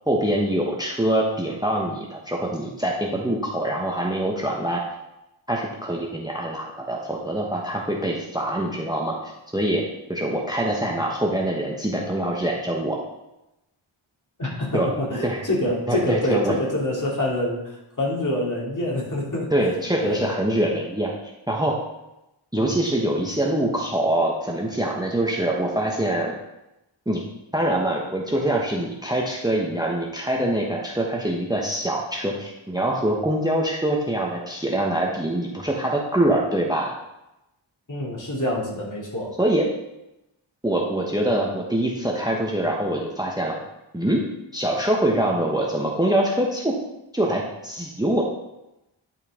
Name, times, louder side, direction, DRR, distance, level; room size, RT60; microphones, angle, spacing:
voice 1, 0.1-4.8 5.5-9.8 10.1-13.0 14.7-14.9 15.2-15.4 15.9-16.5 19.5-21.1 21.5-21.8 22.5-26.3 27.1-27.2 27.5-36.9 39.4-39.7 40.6-43.6 43.9-44.2 44.5-46.8 47.1-48.2, right 1 dB, 10° right, -1 dB, 1.1 m, -24 dB
voice 2, 14.4-19.5 20.0-20.3 37.9-39.3, left 1 dB, 40° left, -4 dB, 2.7 m, -26 dB
10.5 x 4.4 x 3.7 m, 0.91 s
cardioid pair, 45°, 49 cm